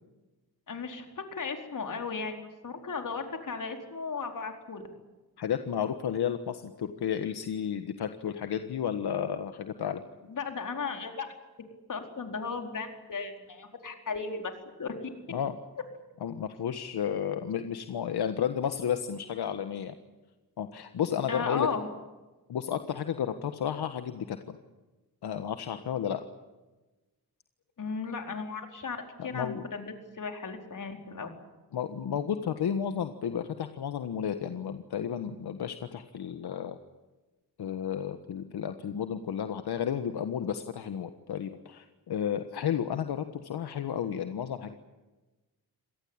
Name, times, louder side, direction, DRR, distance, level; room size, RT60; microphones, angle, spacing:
voice 1, 0.7-4.8 10.3-11.3 11.9-14.5 14.8-15.0 21.3-21.9 27.8-29.0 29.2-31.3, left 5 dB, 55° left, 4 dB, 4.5 m, -35 dB
voice 2, 5.4-10.0 15.3-15.5 16.2-19.9 20.6-21.7 22.5-24.6 25.2-26.2 29.2-29.6 31.7-36.8 37.6-44.7, left 8 dB, 80° left, 8 dB, 1.5 m, -32 dB
27.0 x 18.5 x 8.9 m, 1.1 s
cardioid pair, 100°, 38 cm